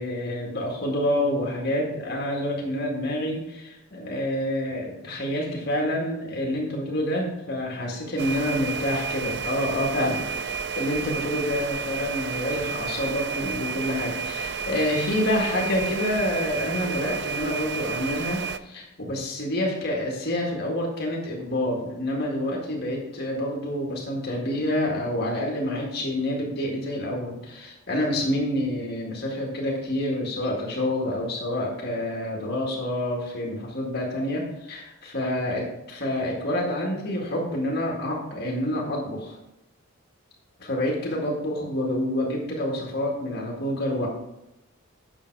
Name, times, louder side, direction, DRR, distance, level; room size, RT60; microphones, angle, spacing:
voice 1, 0.0-39.4 40.6-44.1, left 1 dB, 45° left, -2 dB, 1.8 m, -28 dB
sound 1, 8.2-18.6, right 6 dB, 50° right, 0.4 m, -31 dB
8.9 x 6.5 x 4.6 m, 0.89 s
head